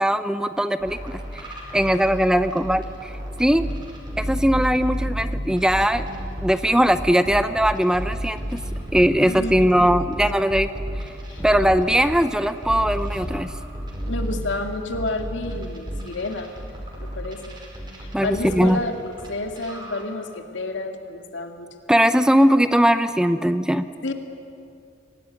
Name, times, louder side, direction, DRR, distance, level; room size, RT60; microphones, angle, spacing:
voice 1, 0.0-1.4 1.7-3.1 3.4-3.7 4.2-6.1 6.4-8.6 8.9-10.7 11.0-11.1 11.4-13.5 18.1-18.8 21.9-23.9, equal, 5° right, 11 dB, 0.5 m, -20 dB
sound 1, 0.8-6.5 6.9-19.3 19.6-20.0, equal, 25° right, 5.3 m, -32 dB
voice 2, 9.1-10.2 11.3-11.4 14.1-16.5 17.0-17.6 18.0-21.7 24.0-24.1, left 2 dB, 75° left, 4 dB, 2.2 m, -30 dB
23.5 x 18.5 x 9.7 m, 2.5 s
head